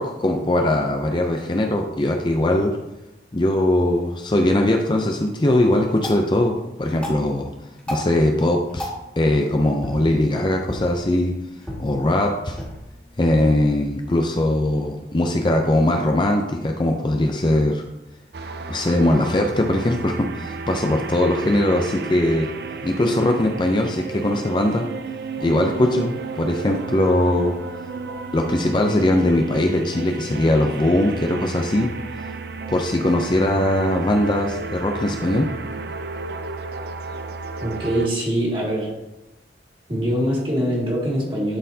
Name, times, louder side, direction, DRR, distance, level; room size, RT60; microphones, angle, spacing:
voice 1, 0.0-2.7 3.3-7.5 7.9-8.9 9.2-11.3 11.8-12.6 13.2-17.8 18.7-22.5 22.8-24.8 25.4-27.5 28.3-31.9 32.7-35.5, left 1 dB, 25° left, 2 dB, 0.5 m, -20 dB
sound 1, 5.9-14.9, equal, 5° left, 1.8 m, -38 dB
sound 2, 18.3-38.1, right 4 dB, 60° right, 0.5 m, -33 dB
voice 2, 37.6-38.9 39.9-41.6, equal, 30° right, -4 dB, 2.0 m, -23 dB
11.0 x 4.3 x 2.7 m, 0.96 s
head